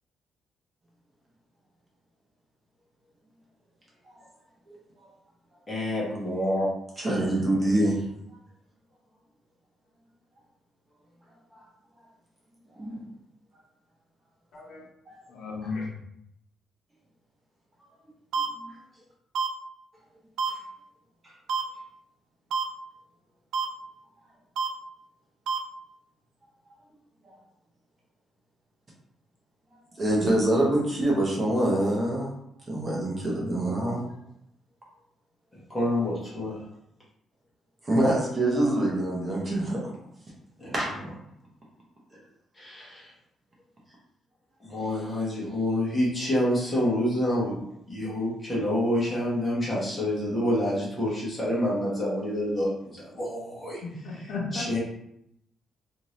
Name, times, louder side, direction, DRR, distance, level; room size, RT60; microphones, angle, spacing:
voice 1, 5.7-6.7 35.7-36.6 40.6-40.7 42.6-43.1 44.6-47.6 47.9-53.8 54.5-54.8, left 1 dB, 15° left, -6 dB, 1.0 m, -27 dB
voice 2, 7.0-8.0 11.5-11.6 12.8-13.1 18.6-18.7 21.2-21.3 30.0-32.3 32.7-34.0 37.8-39.9 40.7-41.0, right 1 dB, 20° right, -3 dB, 0.7 m, -25 dB
voice 3, 14.5-14.8 15.3-16.0 53.8-54.8, left 3 dB, 65° left, -3 dB, 0.8 m, -34 dB
sound 1, 18.3-18.5 19.4-19.5 20.4-20.5 21.5-21.6 22.5-22.6 23.5-23.7 24.6-24.7 25.5-25.6, right 6 dB, 75° right, 0.3 m, -26 dB
2.6 x 2.6 x 3.1 m, 0.74 s
cardioid pair, 175°, 0 cm